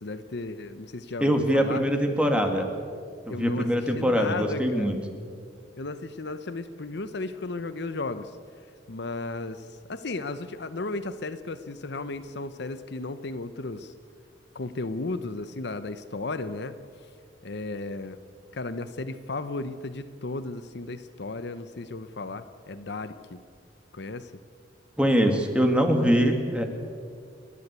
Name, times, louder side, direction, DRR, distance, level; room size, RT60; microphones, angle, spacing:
voice 1, 0.0-1.8 3.3-5.0 5.8-8.3 8.9-13.9 14.5-16.8 17.4-18.2 18.5-23.4 23.9-24.3, left 3 dB, 65° left, 11 dB, 0.8 m, -35 dB
voice 2, 1.2-2.7 3.3-5.0 25.0-26.6, equal, 5° right, 4 dB, 2.0 m, -23 dB
30.0 x 11.5 x 8.2 m, 2.2 s
head